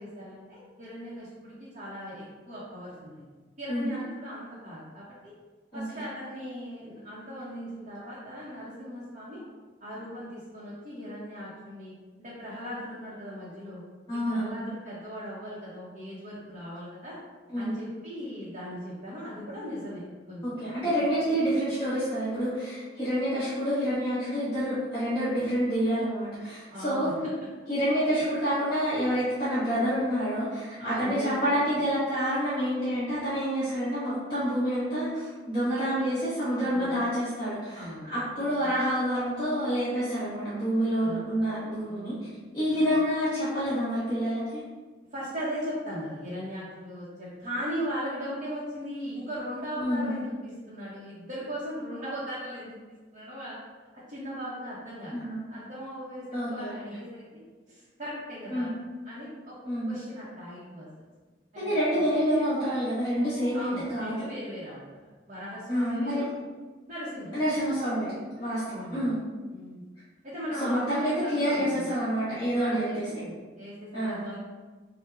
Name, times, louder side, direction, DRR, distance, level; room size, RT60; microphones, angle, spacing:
voice 1, 0.0-3.2 3.6-5.3 5.7-9.4 9.8-11.9 12.2-13.8 14.3-17.2 17.6-20.4 20.8-21.3 25.8-25.9 26.7-27.1 30.8-31.5 35.7-36.1 36.4-37.0 37.7-38.7 41.0-41.4 41.9-42.4 42.7-42.9 45.1-53.5 54.1-57.4 57.7-58.7 59.0-59.5 59.9-60.9 61.5-62.0 63.5-66.3 66.9-67.4 68.7-69.2 69.5-69.8 70.2-72.0 72.5-74.4, equal, 40° right, -9 dB, 0.8 m, -38 dB
voice 2, 5.7-6.0 14.1-14.5 17.5-17.7 20.4-27.1 27.7-42.1 42.5-44.6 49.8-50.1 55.1-55.4 56.3-56.9 58.5-58.7 59.6-59.9 61.6-64.1 65.7-66.3 67.3-69.2 70.6-73.1 73.9-74.3, equal, 25° left, -14 dB, 1.0 m, -28 dB
5.5 x 2.1 x 2.4 m, 1.3 s
head